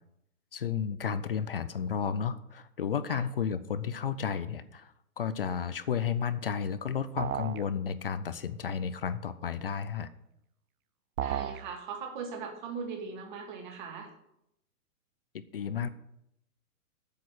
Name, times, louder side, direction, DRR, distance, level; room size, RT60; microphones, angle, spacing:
voice 1, 0.5-10.1 15.3-15.9, left 7 dB, 40° left, 13 dB, 0.5 m, -32 dB
sound 1, 7.2-7.6 11.2-11.6, right 10 dB, 75° right, 0.8 m, -33 dB
voice 2, 11.2-14.1, right 5 dB, 30° right, 3 dB, 2.0 m, -39 dB
8.5 x 6.7 x 8.0 m, 0.80 s
hypercardioid pair, 175°, 44 cm